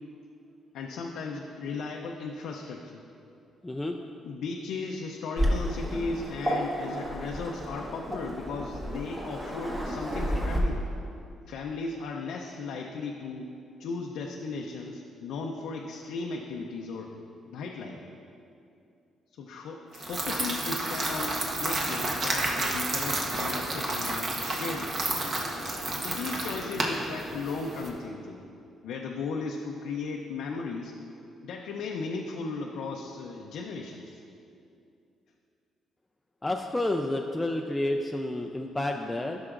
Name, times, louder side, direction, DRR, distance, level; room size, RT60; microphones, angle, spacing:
voice 1, 0.7-3.0 4.2-10.9 11.5-13.5 13.8-17.2 17.5-18.0 19.3-25.3 26.0-28.4 28.8-30.9 31.4-34.2, left 4 dB, 85° left, 0 dB, 0.5 m, -36 dB
voice 2, 3.6-4.0 36.4-39.4, left 1 dB, 15° left, 2 dB, 0.4 m, -30 dB
Waves surf, 5.4-10.6, equal, 20° right, 1.3 m, -31 dB
sound 1, 19.9-27.9, right 2 dB, 50° right, 1.2 m, -31 dB
12.5 x 6.1 x 2.5 m, 2.6 s
cardioid pair, 90°, 0 cm